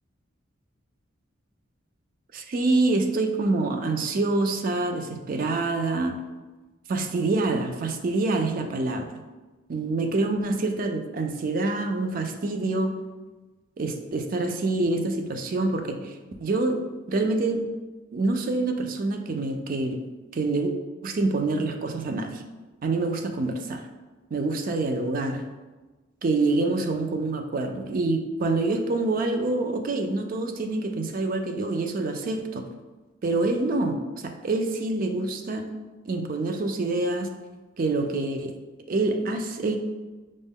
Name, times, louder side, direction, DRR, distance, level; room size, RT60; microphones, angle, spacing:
voice 1, 2.3-6.1 6.9-9.1 9.7-12.9 13.8-16.8 17.1-17.7 18.1-20.0 20.3-20.7 21.0-22.4 22.8-23.8 24.3-25.5 26.2-32.6 33.2-35.6 36.1-37.3 37.8-38.6 38.9-39.8, right 2 dB, 45° right, 5 dB, 0.4 m, -26 dB
5.1 x 2.1 x 3.5 m, 1.2 s
head